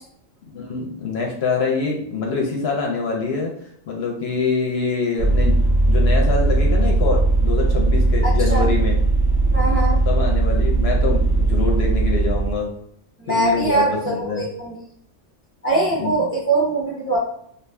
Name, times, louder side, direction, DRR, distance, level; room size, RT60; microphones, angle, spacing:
voice 1, 0.5-3.5 3.9-5.6 5.9-9.0 10.1-12.7 13.3-14.4 16.0-16.1, left 4 dB, 65° left, 0 dB, 0.8 m, -24 dB
Vehicle, 5.2-12.5, right 2 dB, 65° right, 0.9 m, -18 dB
voice 2, 8.2-8.7 9.5-10.0 13.2-14.7 15.6-17.2, right 2 dB, 15° right, -4 dB, 0.4 m, -22 dB
2.5 x 2.4 x 3.2 m, 0.69 s
omnidirectional pair, 1.3 m